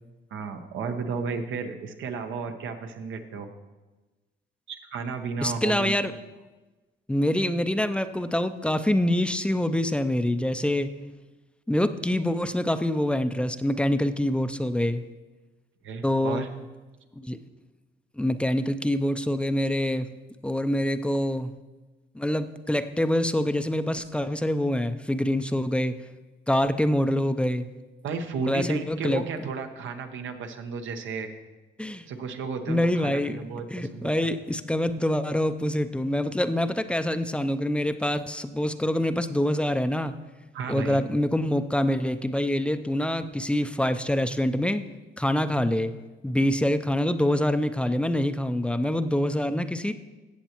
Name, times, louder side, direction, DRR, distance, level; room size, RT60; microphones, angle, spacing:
voice 1, 0.3-3.5 4.7-5.9 15.8-16.5 28.0-31.3 32.1-34.3 40.5-41.0, right 5 dB, 75° right, 6 dB, 1.0 m, -33 dB
voice 2, 5.4-6.1 7.1-10.9 11.7-15.0 16.0-16.5 17.1-17.4 18.2-20.1 20.4-21.5 22.1-26.0 26.5-27.7 28.5-29.2 31.8-32.1 32.7-33.4 33.7-40.2 40.7-44.8 45.2-45.9 46.2-49.9, left 1 dB, 5° left, 10 dB, 0.5 m, -25 dB
14.5 x 7.9 x 3.0 m, 1.2 s
cardioid pair, 90°, 20 cm